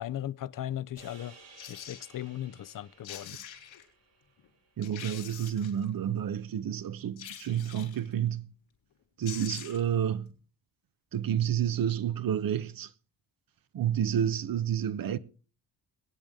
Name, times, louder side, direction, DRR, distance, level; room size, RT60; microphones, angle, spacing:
voice 1, 0.0-1.4 1.7-3.4, left 12 dB, 45° left, 0.6 m, -37 dB
sound 1, 1.0-5.4, right 3 dB, 90° right, 5.2 m, -57 dB
sound 2, 1.6-2.0 2.8-2.9 3.0-3.8 4.4-4.5 4.8-5.8 7.2-8.1 8.9-9.0 9.2-9.9 10.3-10.4, left 10 dB, 90° left, 4.6 m, -44 dB
voice 2, 4.8-8.5 9.2-10.3 11.1-12.9 13.7-15.2, right 9 dB, 50° right, 0.8 m, -30 dB
22.0 x 9.1 x 3.6 m
cardioid pair, 110°, 45 cm